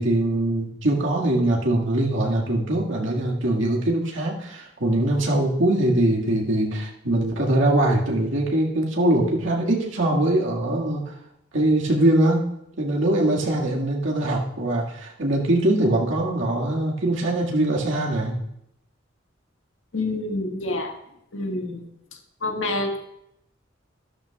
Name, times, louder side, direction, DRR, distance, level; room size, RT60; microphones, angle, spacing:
voice 1, 0.0-11.1 11.5-18.4, right 1 dB, 70° right, -2 dB, 2.0 m, -22 dB
voice 2, 19.9-20.9 21.3-23.0, left 2 dB, 75° left, 2 dB, 1.6 m, -28 dB
13.0 x 12.5 x 2.4 m, 0.78 s
head